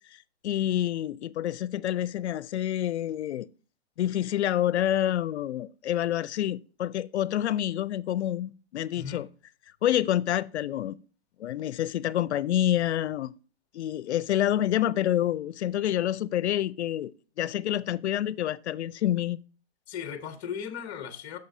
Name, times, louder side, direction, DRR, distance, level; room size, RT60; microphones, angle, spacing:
voice 1, 0.1-3.5 4.0-9.3 9.8-11.0 11.4-13.3 13.7-17.1 17.4-19.4, left 12 dB, 85° left, 0.5 m, -28 dB
voice 2, 8.9-9.3 19.9-21.4, left 8 dB, 20° left, 0.8 m, -37 dB
9.5 x 6.6 x 2.7 m
hypercardioid pair, 160°, 33 cm